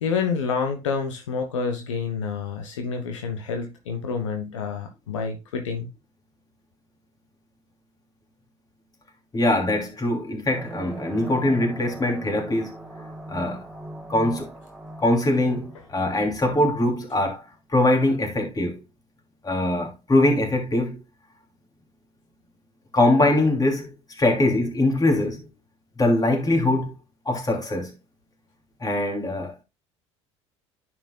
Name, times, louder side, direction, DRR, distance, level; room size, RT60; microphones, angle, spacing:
voice 1, 0.0-5.9, left 5 dB, 80° left, 1.2 m, -28 dB
voice 2, 9.3-12.8 13.3-13.6 14.1-14.5 15.0-17.4 17.7-18.8 19.4-21.0 22.9-25.5 26.0-26.9 27.2-27.9 28.8-29.6, left 1 dB, 25° left, 2.9 m, -22 dB
sound 1, 10.5-16.6, right 2 dB, 5° right, 2.0 m, -40 dB
10.0 x 6.1 x 2.3 m
hypercardioid pair, 65°, 16 cm